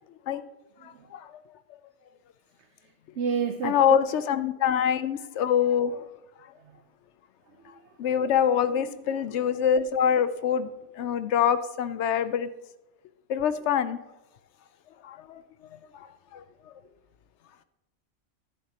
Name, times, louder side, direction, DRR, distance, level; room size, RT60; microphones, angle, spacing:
voice 1, 0.8-1.3 3.6-6.1 8.0-10.7 11.0-12.5 13.3-14.0 15.0-16.7, left 8 dB, 70° left, 13 dB, 0.8 m, -25 dB
voice 2, 3.2-4.0 6.6-6.8 7.7-7.8 8.8-9.2, right 6 dB, 65° right, 5 dB, 1.0 m, -31 dB
11.5 x 10.0 x 2.9 m, 0.95 s
omnidirectional pair, 1.3 m